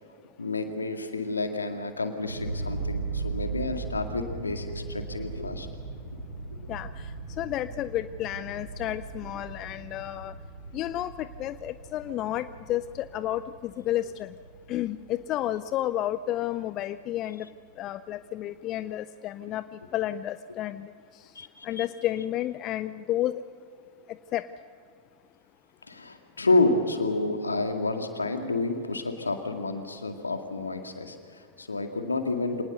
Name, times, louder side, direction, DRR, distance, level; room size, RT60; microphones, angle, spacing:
voice 1, 0.4-5.7 21.4-21.9 25.9-32.6, left 2 dB, 80° left, 6 dB, 2.1 m, -29 dB
sound 1, 2.3-15.9, right 4 dB, 85° right, 6.5 m, -38 dB
voice 2, 7.4-10.3 10.7-13.4 13.9-14.3 14.7-17.4 17.8-19.6 19.9-20.9 21.6-23.3 24.3-24.4, left 13 dB, 35° left, 15 dB, 0.5 m, -31 dB
25.5 x 19.5 x 6.7 m, 2.3 s
figure-of-eight pair, 90°, 0 cm